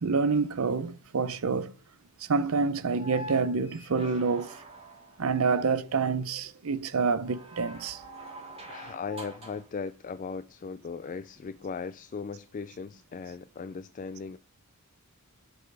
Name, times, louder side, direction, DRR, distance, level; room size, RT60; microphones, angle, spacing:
voice 1, 0.0-1.7 2.2-4.6 5.2-8.0, right 4 dB, 75° right, 0.6 m, -27 dB
sound 1, 2.9-5.4 7.2-9.7 11.3-11.4, equal, 30° right, 3.2 m, -44 dB
voice 2, 8.7-14.4, left 5 dB, 35° left, 0.3 m, -38 dB
7.9 x 7.7 x 3.4 m
head